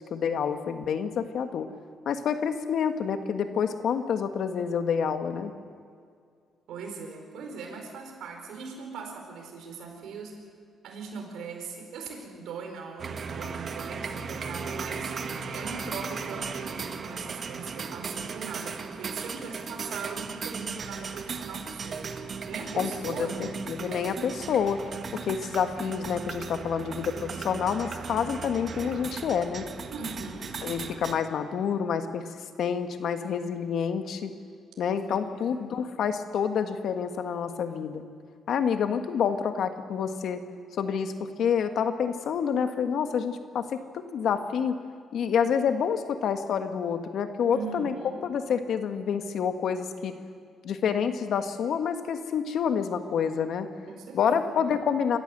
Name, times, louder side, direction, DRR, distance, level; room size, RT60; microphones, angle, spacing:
voice 1, 0.1-1.7 2.0-5.5 22.8-24.8 25.1-29.6 30.6-32.2 32.6-34.3 34.8-38.0 38.5-40.4 40.8-41.1 41.4-44.8 45.1-47.9 48.2-50.1 50.6-53.7 54.1-55.2, left 7 dB, 70° left, 7 dB, 1.6 m, -28 dB
voice 2, 6.7-10.4 10.8-23.6 29.9-30.6 34.9-35.7 47.5-48.2 53.9-54.6, right 5 dB, 80° right, 3 dB, 4.7 m, -40 dB
sound 1, 13.0-31.2, right 5 dB, 50° right, 1.5 m, -37 dB
26.5 x 14.5 x 8.0 m, 2.2 s
cardioid pair, 90°, 0 cm